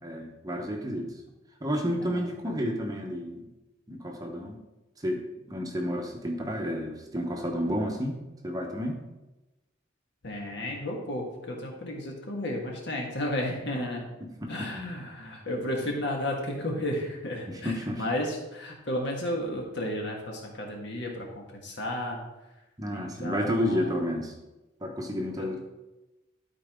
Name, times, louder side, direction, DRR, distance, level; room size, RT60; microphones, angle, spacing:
voice 1, 0.0-1.1 1.6-3.5 3.9-4.6 5.0-8.2 8.4-9.0 14.4-14.7 17.5-18.0 22.8-24.3 24.8-25.6, equal, 20° right, 2 dB, 0.9 m, -31 dB
voice 2, 2.0-2.5 10.2-14.0 14.5-22.2 22.9-23.9 25.4-25.5, left 1 dB, 60° left, 0 dB, 1.6 m, -33 dB
12.5 x 4.5 x 3.6 m, 1.0 s
head